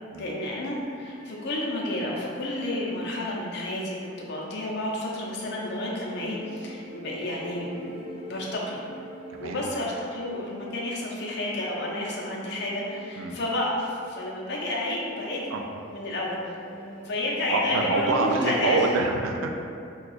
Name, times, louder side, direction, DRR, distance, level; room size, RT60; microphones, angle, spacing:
voice 1, 0.2-8.8 9.4-15.5 15.9-16.5 17.0-18.9, left 1 dB, 55° left, -3 dB, 0.5 m, -30 dB
sound 1, 0.7-18.9, equal, 30° right, 0.6 m, -46 dB
voice 2, 9.3-9.6 13.2-13.4 15.5-15.6 17.5-19.5, right 3 dB, 80° right, 2 dB, 0.3 m, -26 dB
2.7 x 2.3 x 3.9 m, 2.5 s
head